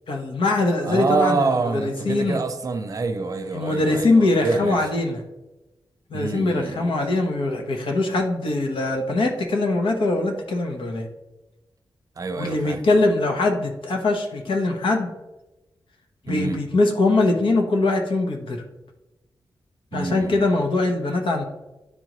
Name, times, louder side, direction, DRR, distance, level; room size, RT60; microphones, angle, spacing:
voice 1, 0.1-2.4 3.5-5.2 6.1-11.1 12.4-15.1 16.3-18.6 19.9-21.4, left 2 dB, 80° left, 3 dB, 1.0 m, -22 dB
voice 2, 0.8-4.8 6.1-6.9 12.2-12.8 16.3-16.6 19.9-20.5, right 4 dB, 40° right, 6 dB, 0.6 m, -26 dB
9.6 x 3.8 x 3.0 m, 1.0 s
wide cardioid pair, 165°, 9 cm